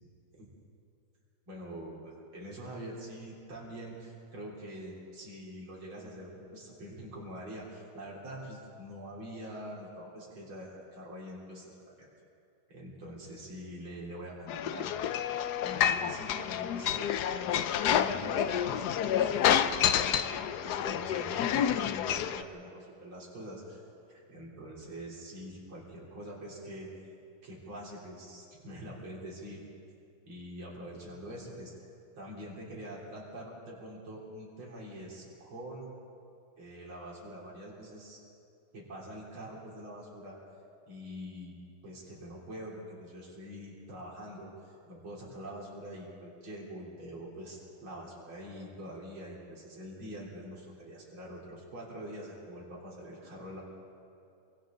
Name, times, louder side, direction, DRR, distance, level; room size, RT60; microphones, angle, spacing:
voice 1, 1.5-12.1 12.7-14.9 15.6-17.5 17.8-23.8 24.1-26.9 27.4-29.6 30.3-35.9 36.6-38.2 38.7-40.4 40.9-41.6 41.8-53.6, equal, 80° right, -4 dB, 4.5 m, -45 dB
sound 1, 14.5-22.4, left 9 dB, 65° left, 1.0 m, -29 dB
27.5 x 25.0 x 3.9 m, 2.5 s
omnidirectional pair, 2.2 m